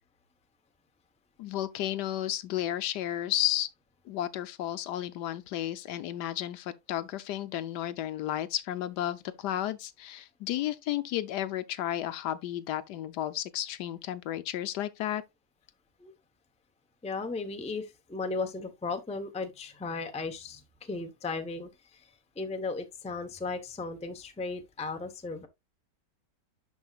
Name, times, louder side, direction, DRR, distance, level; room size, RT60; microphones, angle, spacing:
voice 1, 1.4-3.7 4.1-15.2, left 12 dB, 80° left, 1.2 m, -33 dB
voice 2, 17.0-21.7 22.4-25.5, left 3 dB, 5° left, 0.5 m, -36 dB
11.5 x 4.6 x 2.3 m
omnidirectional pair, 1.8 m